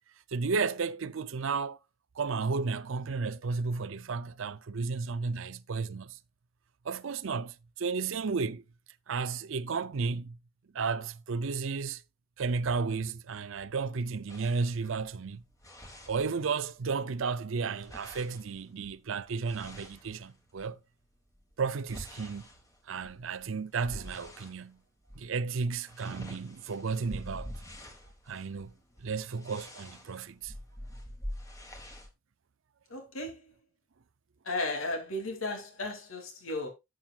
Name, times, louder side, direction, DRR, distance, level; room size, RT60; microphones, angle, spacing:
voice 1, 0.3-1.8 2.2-6.2 6.8-8.6 9.1-10.4 10.7-12.0 12.4-15.4 16.1-20.8 21.6-22.4 22.9-24.8 25.2-27.5 28.3-28.7 29.0-30.5, right 4 dB, 70° right, 0.5 m, -33 dB
sound 1, 14.3-16.8 17.1-20.7 21.3-24.6 25.0-25.3 25.6-32.1, equal, 15° left, 1.5 m, -47 dB
voice 2, 32.9-33.4 34.4-36.7, left 2 dB, 85° left, 2.9 m, -34 dB
11.5 x 7.6 x 2.4 m
head